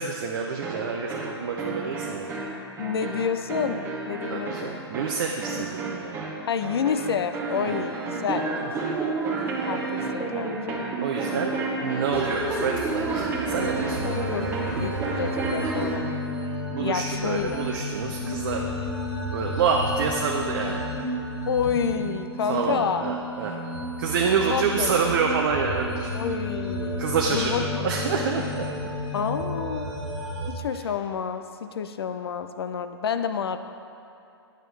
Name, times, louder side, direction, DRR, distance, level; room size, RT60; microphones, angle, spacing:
voice 1, 0.0-2.4 4.3-6.3 7.7-7.8 11.0-11.5 11.8-14.3 16.7-18.7 19.3-20.9 22.5-23.6 24.0-26.1 27.0-28.6, right 5 dB, 50° right, 0 dB, 0.6 m, -27 dB
sound 1, 0.6-16.1, right 3 dB, 15° right, 0.9 m, -30 dB
voice 2, 2.8-4.7 6.5-8.5 9.7-10.9 14.0-14.5 14.8-16.1 16.8-17.7 21.5-23.1 24.5-25.0 26.1-27.9 29.1-29.9 30.5-33.6, left 7 dB, 65° left, 9 dB, 0.4 m, -29 dB
sound 2, 12.0-30.5, left 1 dB, 85° right, 1.5 m, -32 dB
9.1 x 6.0 x 3.3 m, 2.7 s
figure-of-eight pair, 115°, 14 cm